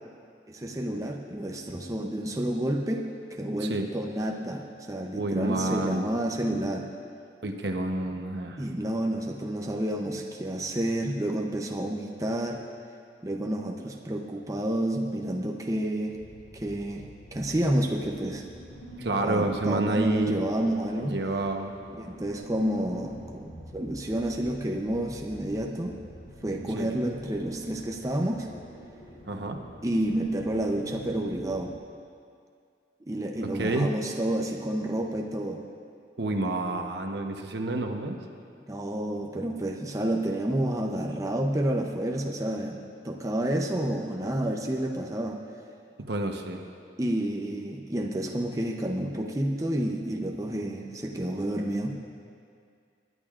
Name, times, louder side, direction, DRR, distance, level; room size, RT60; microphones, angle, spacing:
voice 1, 0.5-3.0 3.3-6.9 8.6-12.6 13.2-16.1 16.5-17.0 17.3-18.4 19.2-21.1 22.0-26.0 26.4-28.5 29.8-31.7 33.1-35.6 38.7-42.8 43.0-45.4 47.0-52.0, right 1 dB, 20° right, 0 dB, 0.6 m, -29 dB
voice 2, 5.2-6.0 7.4-8.6 19.0-20.4 21.0-21.7 26.8-26.9 29.3-29.6 33.4-34.0 36.2-38.2 46.0-46.6, right 2 dB, 70° right, 3 dB, 1.0 m, -29 dB
sound 1, 16.1-31.7, right 1 dB, 65° left, 2.7 m, -46 dB
23.5 x 11.0 x 2.5 m, 2.3 s
head